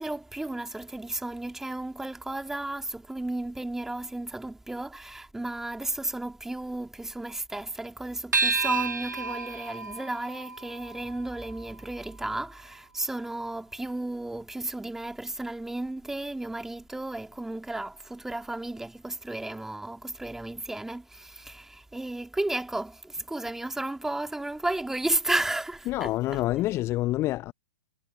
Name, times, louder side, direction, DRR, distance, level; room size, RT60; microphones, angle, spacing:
voice 1, 0.0-26.4, right 2 dB, 5° right, 2.8 m, -33 dB
sound 1, 8.3-13.1, right 4 dB, 80° right, 3.2 m, -32 dB
voice 2, 25.9-27.5, left 16 dB, 25° left, 0.8 m, -27 dB
figure-of-eight pair, 110°, 10 cm